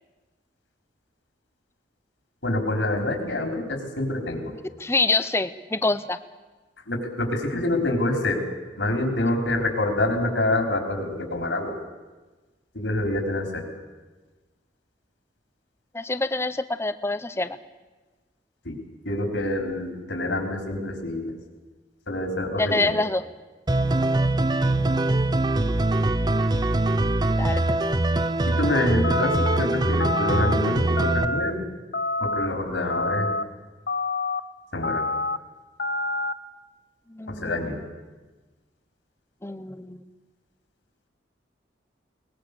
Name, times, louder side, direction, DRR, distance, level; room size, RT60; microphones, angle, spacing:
voice 1, 2.4-4.5 6.9-8.4 8.8-11.7 12.7-13.6 18.6-18.8 19.0-21.3 22.1-22.9 24.7-24.9 28.5-31.6 32.2-33.3 34.7-35.0 37.3-37.8, left 1 dB, 85° left, 3 dB, 4.5 m, -26 dB
voice 2, 4.8-6.2 15.9-17.6 22.6-23.2 27.4-27.6 37.1-37.9 39.4-40.0, left 3 dB, 15° left, 13 dB, 0.8 m, -26 dB
sound 1, 23.7-31.3, right 2 dB, 25° right, 0.6 m, -23 dB
sound 2, 29.0-29.6 30.0-30.5 31.0-31.5 31.9-32.5 32.9-33.4 33.9-34.4 34.8-35.4 35.8-36.3, left 2 dB, 60° left, 0.9 m, -27 dB
22.0 x 20.0 x 6.9 m, 1.2 s
head